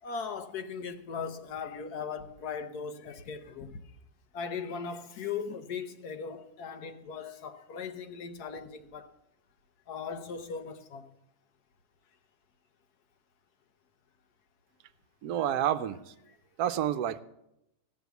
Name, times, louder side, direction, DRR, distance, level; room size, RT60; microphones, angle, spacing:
voice 1, 0.0-3.8 4.3-9.1 9.9-11.1 15.4-15.5, left 6 dB, 75° left, 1.5 m, -38 dB
voice 2, 15.2-16.1 16.6-17.2, right 10 dB, 80° right, 1.1 m, -29 dB
16.0 x 6.1 x 8.1 m
omnidirectional pair, 1.7 m